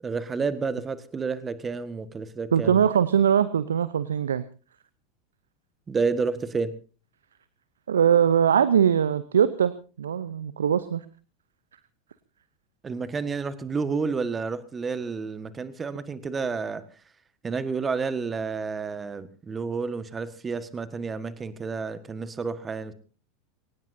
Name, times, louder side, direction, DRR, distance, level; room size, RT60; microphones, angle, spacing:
voice 1, 0.0-2.8 5.9-6.7 12.8-16.8 17.4-22.9, right 4 dB, 20° right, 12 dB, 1.6 m, -30 dB
voice 2, 2.5-4.4 7.9-9.7 10.0-11.0, right 8 dB, 75° right, 15 dB, 0.7 m, -21 dB
23.0 x 18.5 x 2.7 m, 0.36 s
figure-of-eight pair, 80°, 0 cm